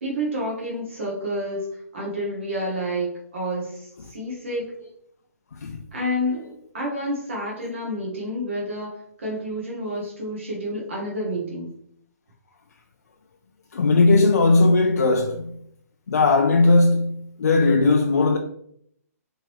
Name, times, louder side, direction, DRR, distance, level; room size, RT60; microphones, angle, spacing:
voice 1, 0.0-4.7 5.9-11.7, equal, 50° right, 1.0 m, -29 dB
voice 2, 13.7-15.5 16.1-18.4, left 3 dB, 80° left, 0.4 m, -18 dB
3.6 x 3.0 x 3.0 m
hypercardioid pair, 175°, 9 cm